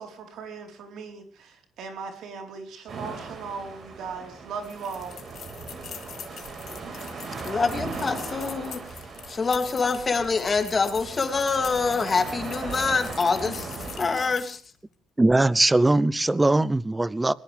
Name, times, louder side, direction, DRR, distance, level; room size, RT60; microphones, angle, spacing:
voice 1, 0.0-5.2, right 5 dB, 80° right, 4.3 m, -38 dB
sound 1, 2.9-14.4, right 4 dB, 55° right, 5.1 m, -38 dB
sound 2, 4.6-14.7, left 8 dB, 65° left, 2.2 m, -44 dB
sound 3, 6.7-6.9 7.4-7.7 8.1-8.3 8.8-9.0 9.5-9.7 10.2-10.6 10.9-11.1 11.6-11.9 12.3-12.6 12.9-13.3 13.8-14.1, left 1 dB, 20° left, 4.8 m, -50 dB
voice 2, 7.4-8.8 9.3-14.6, left 4 dB, 35° left, 2.8 m, -25 dB
voice 3, 15.2-17.3, right 2 dB, 15° right, 0.8 m, -20 dB
21.5 x 19.0 x 3.5 m
cardioid pair, 90°, 0 cm